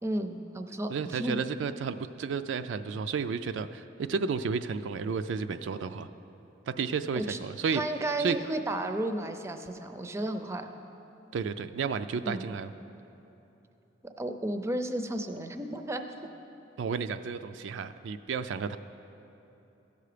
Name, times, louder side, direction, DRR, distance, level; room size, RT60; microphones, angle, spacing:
voice 1, 0.0-1.4 7.1-7.4 7.7-10.7 12.2-12.5 14.2-16.0, right 1 dB, 15° right, 7 dB, 0.5 m, -33 dB
voice 2, 0.9-6.1 6.7-8.4 11.3-12.7 16.8-18.8, right 5 dB, 75° right, 10 dB, 0.3 m, -32 dB
15.5 x 6.8 x 5.0 m, 3.0 s
head